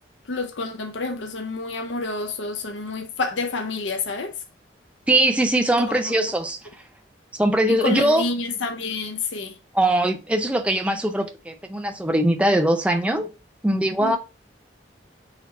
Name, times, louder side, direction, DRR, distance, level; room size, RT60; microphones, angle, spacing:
voice 1, 0.3-4.3 5.8-6.2 7.7-9.5 14.0-14.2, left 3 dB, 90° left, 0.7 m, -28 dB
voice 2, 5.1-6.6 7.4-8.2 9.7-13.3 13.6-14.2, right 1 dB, 5° right, 0.5 m, -21 dB
4.1 x 2.9 x 4.1 m
head